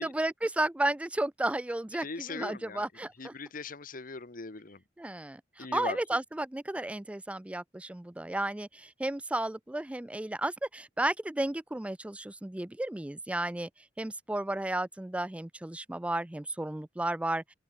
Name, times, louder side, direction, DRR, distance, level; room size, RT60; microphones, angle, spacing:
voice 1, 0.0-3.3 5.0-13.7 14.0-17.4, right 1 dB, 5° right, 0.4 m, -33 dB
voice 2, 2.0-2.9 3.2-4.8 5.6-6.0, left 4 dB, 50° left, 1.3 m, -40 dB
open air
head